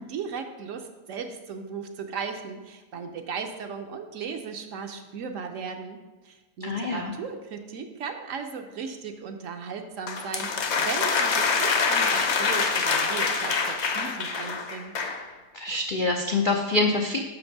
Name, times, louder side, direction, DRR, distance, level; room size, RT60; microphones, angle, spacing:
voice 1, 0.0-6.0 6.2-14.9, right 5 dB, 65° right, 5 dB, 1.0 m, -36 dB
voice 2, 6.6-7.1 15.5-17.2, left 3 dB, 75° left, 3 dB, 0.4 m, -25 dB
sound 1, 10.1-15.2, left 5 dB, 55° left, 1.0 m, -25 dB
6.0 x 5.2 x 5.9 m, 1.2 s
omnidirectional pair, 1.6 m